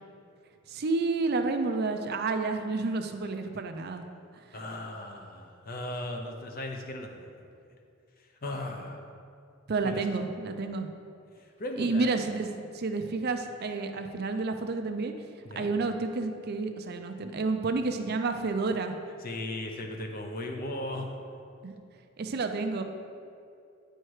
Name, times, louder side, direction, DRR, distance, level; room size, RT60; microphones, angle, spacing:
voice 1, 0.7-4.1 9.7-10.9 11.8-12.5 12.7-15.1 15.6-18.9 21.6-21.7 22.2-22.8, right 3 dB, 50° right, 6 dB, 0.5 m, -30 dB
voice 2, 4.5-7.3 8.4-9.0 9.8-10.0 11.6-12.1 15.4-15.7 19.2-21.1, left 1 dB, 45° left, 3 dB, 0.8 m, -37 dB
8.9 x 4.4 x 4.8 m, 2.5 s
head